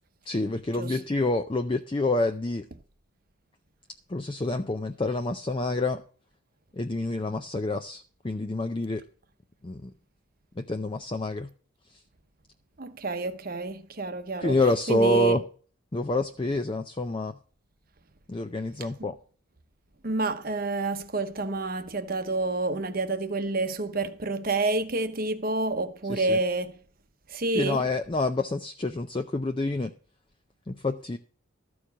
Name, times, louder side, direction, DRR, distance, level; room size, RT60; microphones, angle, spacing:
voice 1, 0.3-2.7 4.1-6.0 6.7-9.0 9.6-9.9 10.6-11.5 14.4-15.4 15.9-17.4 18.3-19.2 26.1-26.4 27.5-29.9 30.7-31.2, left 2 dB, 25° left, 0.4 m, -27 dB
voice 2, 12.8-14.6 14.9-15.4 19.0-19.1 20.0-26.8 27.3-27.8, right 2 dB, 45° right, 0.9 m, -29 dB
13.0 x 4.8 x 7.0 m
head